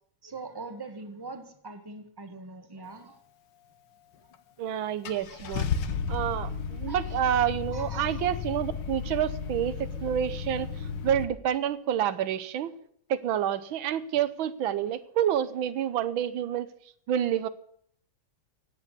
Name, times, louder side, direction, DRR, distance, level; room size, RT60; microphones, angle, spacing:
voice 1, 0.2-3.2 4.7-4.8 6.9-7.2 7.7-8.3, right 3 dB, 15° right, 7 dB, 1.5 m, -42 dB
Car / Engine starting, 4.3-4.4 5.1-11.2, left 6 dB, 70° left, 1.6 m, -33 dB
voice 2, 4.6-5.7 6.1-12.7 13.1-16.7 17.1-17.5, right 10 dB, 90° right, 14 dB, 1.6 m, -28 dB
16.5 x 8.5 x 8.2 m, 0.65 s
omnidirectional pair, 2.1 m